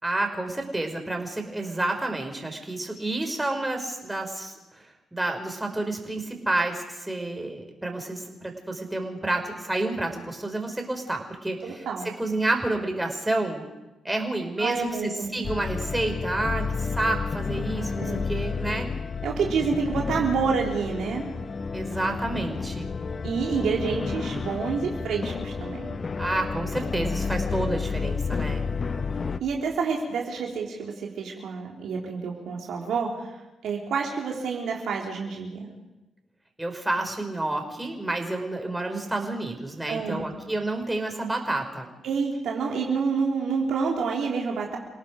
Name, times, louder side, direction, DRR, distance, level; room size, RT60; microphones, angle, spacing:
voice 1, 0.0-4.9 5.1-11.9 12.2-13.6 14.0-18.9 21.7-22.9 26.2-28.6 36.6-41.9, right 2 dB, 15° right, 4 dB, 5.2 m, -29 dB
voice 2, 11.6-12.1 14.6-15.5 18.0-18.3 19.2-21.2 23.2-26.0 29.4-33.4 33.6-35.7 39.9-40.3 42.0-44.8, right 5 dB, 70° right, -1 dB, 3.3 m, -28 dB
sound 1, 15.4-29.4, left 5 dB, 45° left, 1.0 m, -31 dB
28.5 x 18.0 x 5.2 m, 1.0 s
hypercardioid pair, 45°, 0 cm